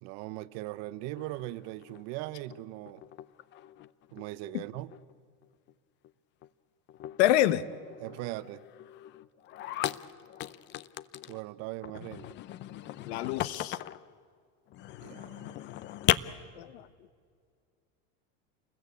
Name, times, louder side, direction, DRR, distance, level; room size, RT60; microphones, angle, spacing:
voice 1, 0.0-3.0 4.1-4.9 8.0-8.6 11.3-12.4 15.0-15.6, right 17 dB, 50° right, 0.9 m, -40 dB
sound 1, 1.2-2.6 2.9-4.3 4.6-5.1 5.4-5.7 6.0-6.1 6.4-6.5 6.9-11.4 11.8-14.1 14.7-16.2, left 14 dB, 35° left, 0.6 m, -37 dB
voice 2, 7.2-7.6 13.1-13.8 16.6-16.9, left 13 dB, 75° left, 1.2 m, -26 dB
29.0 x 21.0 x 8.5 m
supercardioid pair, 145°, 33 cm